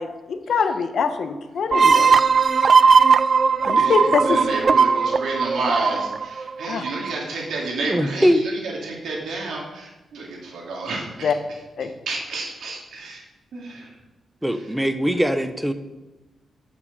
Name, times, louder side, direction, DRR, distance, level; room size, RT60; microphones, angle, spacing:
voice 1, 0.0-2.2 3.6-4.5 6.7-6.8 11.2-11.3 11.8-11.9, left 5 dB, 65° left, 8 dB, 1.1 m, -24 dB
sound 1, 1.7-7.2, right 5 dB, 45° right, 0.3 m, -18 dB
voice 2, 3.6-8.5 8.8-11.3 12.1-13.2 13.5-13.9, right 3 dB, 80° right, -2 dB, 2.5 m, -30 dB
voice 3, 7.9-8.4 14.4-15.7, equal, 5° right, 10 dB, 0.8 m, -21 dB
10.5 x 6.2 x 6.7 m, 1.1 s
cardioid pair, 110°, 0 cm